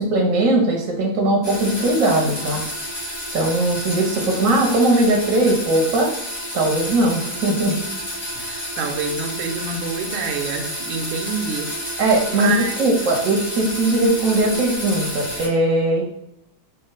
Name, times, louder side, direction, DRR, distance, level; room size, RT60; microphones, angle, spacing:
voice 1, 0.0-2.6 3.3-6.1 6.5-7.8 12.0-16.0, right 2 dB, 60° right, 0 dB, 0.9 m, -19 dB
sound 1, 1.4-15.5, equal, 15° left, 0.9 m, -30 dB
voice 2, 8.3-12.0 12.3-12.9, right 5 dB, 85° right, 6 dB, 1.4 m, -27 dB
4.5 x 2.4 x 3.9 m, 0.77 s
omnidirectional pair, 2.2 m